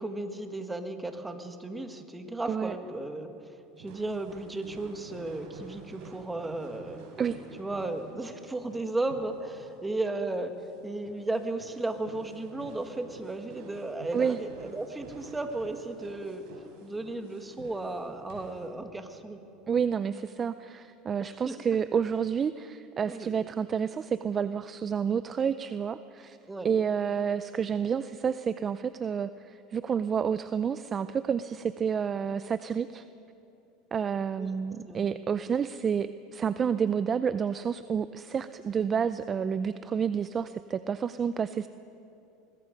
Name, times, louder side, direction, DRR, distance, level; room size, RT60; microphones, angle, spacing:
voice 1, 0.0-3.3 3.8-7.0 7.6-16.4 16.8-19.4 21.2-21.6 23.1-23.4 26.5-26.7 34.4-34.5 34.8-35.1, right 2 dB, 10° right, 6 dB, 1.8 m, -35 dB
voice 2, 2.5-2.8 7.2-7.4 14.1-14.4 19.7-26.4 26.6-33.1 33.9-41.7, right 7 dB, 30° right, 13 dB, 0.5 m, -29 dB
sound 1, 3.8-18.7, right 4 dB, 70° right, 5.3 m, -50 dB
23.5 x 21.0 x 5.3 m, 2.7 s
supercardioid pair, 115°, 0 cm